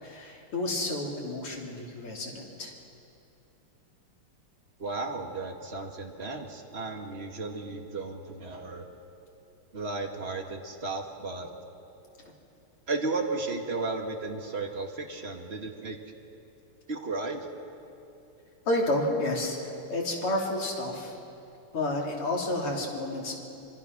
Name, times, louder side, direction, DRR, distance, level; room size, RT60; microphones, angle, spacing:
voice 1, 0.0-2.7 18.7-19.6 19.9-21.2 21.7-23.4, left 1 dB, 80° left, -1 dB, 4.1 m, -30 dB
voice 2, 4.8-8.9 9.7-11.5 12.9-16.0 16.9-17.5, right 3 dB, 30° right, 3 dB, 1.9 m, -34 dB
26.0 x 24.0 x 6.0 m, 2.7 s
omnidirectional pair, 2.4 m